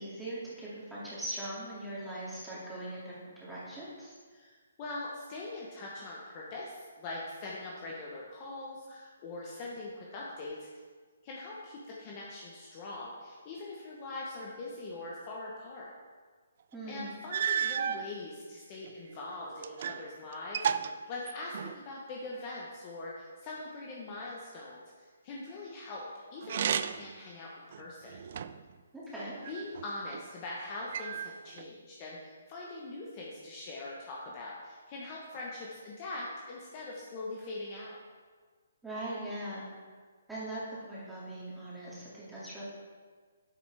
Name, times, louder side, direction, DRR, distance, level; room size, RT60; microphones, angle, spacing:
voice 1, 0.0-4.1 16.7-17.2 28.9-29.3 38.8-39.7 40.3-40.6 40.9-42.6, right 1 dB, 5° right, -10 dB, 2.5 m, -40 dB
voice 2, 4.3-10.6 11.2-15.9 16.9-26.0 26.3-28.2 29.5-38.0, left 2 dB, 25° left, -4 dB, 1.1 m, -42 dB
sound 1, 16.7-16.8 17.3-18.1 18.8-20.1 20.3-21.9 26.4-27.2 27.7-28.7 29.4-30.2 30.9-31.7, right 8 dB, 45° right, 0.3 m, -33 dB
10.0 x 7.9 x 3.5 m, 1.5 s
hypercardioid pair, 165°, 0 cm